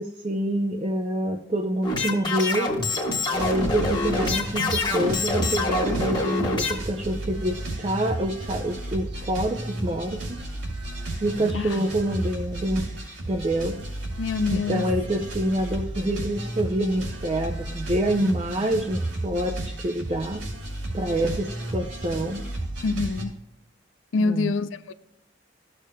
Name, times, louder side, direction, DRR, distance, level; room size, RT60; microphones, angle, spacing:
voice 1, 0.0-2.7 3.3-10.4 11.2-12.8 13.3-13.8 14.5-20.4 20.9-22.4 24.2-24.5, right 1 dB, 30° right, 0.5 m, -27 dB
sound 1, 1.8-6.7, left 2 dB, 25° left, 1.3 m, -26 dB
sound 2, 3.3-23.2, right 1 dB, 80° right, 2.7 m, -33 dB
voice 2, 14.2-14.9 22.8-23.4 24.1-24.9, left 4 dB, 75° left, 0.4 m, -26 dB
13.5 x 6.5 x 2.2 m
head